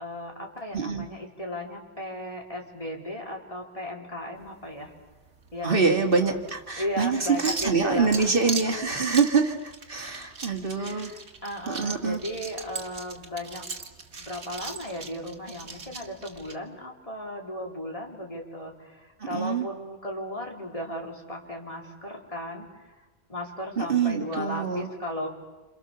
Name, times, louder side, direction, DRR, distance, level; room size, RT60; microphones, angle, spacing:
voice 1, 0.0-4.9 5.5-6.4 6.8-8.7 10.8-13.7 14.1-22.9 23.3-25.3, left 1 dB, 30° left, 0 dB, 3.9 m, -36 dB
voice 2, 0.7-1.1 5.6-11.1 11.7-12.2 19.2-19.7 23.8-24.9, right 5 dB, 55° right, 3 dB, 2.1 m, -25 dB
sound 1, 4.4-16.5, right 4 dB, 85° right, 2.1 m, -39 dB
28.5 x 27.0 x 6.8 m, 1.2 s
omnidirectional pair, 1.1 m